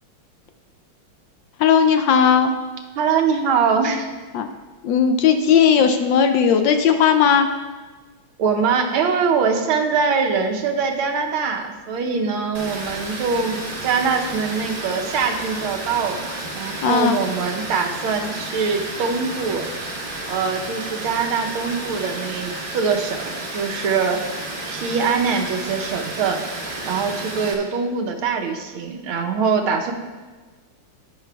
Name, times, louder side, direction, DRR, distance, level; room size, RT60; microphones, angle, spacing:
voice 1, 1.6-2.5 4.3-4.5 4.8-7.5 16.8-17.2, left 7 dB, 75° left, 7 dB, 1.2 m, -16 dB
voice 2, 3.0-4.2 8.4-19.7 20.3-24.2 24.7-26.4 26.8-29.9, right 5 dB, 80° right, 3 dB, 1.6 m, -23 dB
Water, 12.5-27.5, right 2 dB, 35° right, 0.9 m, -32 dB
10.5 x 10.0 x 2.3 m, 1.3 s
omnidirectional pair, 2.3 m